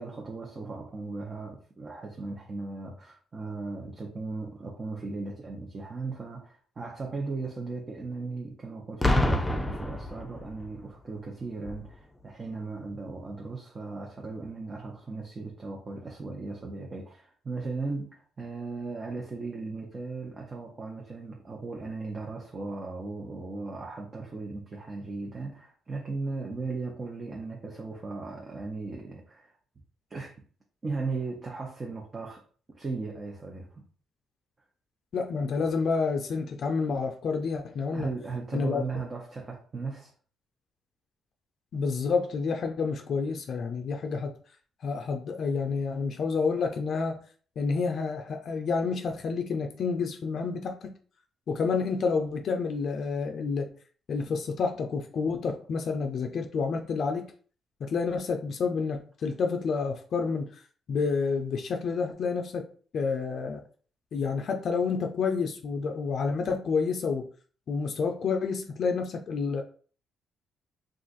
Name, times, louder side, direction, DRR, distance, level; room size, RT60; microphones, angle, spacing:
voice 1, 0.0-29.5 30.1-30.4 30.8-32.4 32.7-33.8 37.9-40.1, right 3 dB, 35° right, 0.7 m, -37 dB
Boom, 9.0-10.8 11.6-11.9, left 1 dB, 10° left, 0.5 m, -27 dB
voice 2, 35.1-38.1 38.5-38.8 41.7-44.3 44.8-47.2 47.6-50.9 51.5-53.7 54.1-57.3 57.8-60.5 60.9-62.7 62.9-63.6 64.1-67.3 67.7-69.6, left 5 dB, 60° left, 0.4 m, -29 dB
2.5 x 2.4 x 4.0 m
cardioid pair, 90°, 0 cm